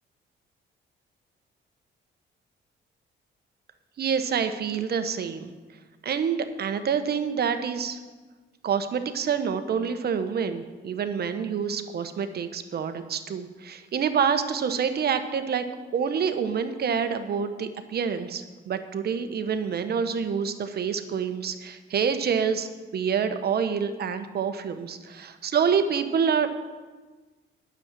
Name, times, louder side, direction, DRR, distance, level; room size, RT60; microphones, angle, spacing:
voice 1, 4.0-5.5 6.0-8.0 8.6-15.6 15.9-26.5, right 6 dB, 55° right, 9 dB, 1.0 m, -27 dB
9.7 x 7.2 x 7.4 m, 1.3 s
cardioid pair, 90°, 20 cm